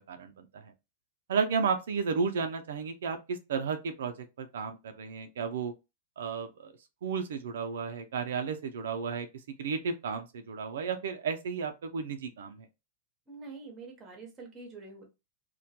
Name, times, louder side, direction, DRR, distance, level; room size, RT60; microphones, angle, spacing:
voice 1, 0.1-0.7 1.3-5.7 6.2-6.8 7.0-9.3 9.6-12.7, right 5 dB, 85° right, 0.4 m, -33 dB
voice 2, 13.3-15.0, right 3 dB, 20° right, 0.8 m, -46 dB
2.2 x 2.2 x 2.7 m
supercardioid pair, 155°, 0 cm